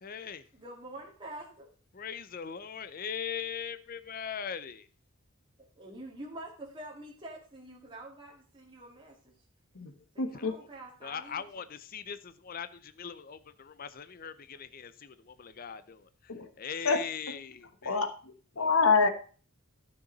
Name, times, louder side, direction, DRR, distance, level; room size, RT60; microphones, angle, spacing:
voice 1, 0.0-0.4 1.9-4.9 10.3-10.7 11.0-16.1 16.6-18.0 18.6-18.8, left 7 dB, 40° left, 0.5 m, -40 dB
voice 2, 0.5-1.7 5.6-9.3 10.1-11.6, right 1 dB, 20° right, 2.1 m, -46 dB
voice 3, 10.2-10.5 16.3-16.5 16.8-17.0 17.8-19.1, left 4 dB, 75° left, 1.2 m, -26 dB
12.5 x 6.7 x 3.9 m
head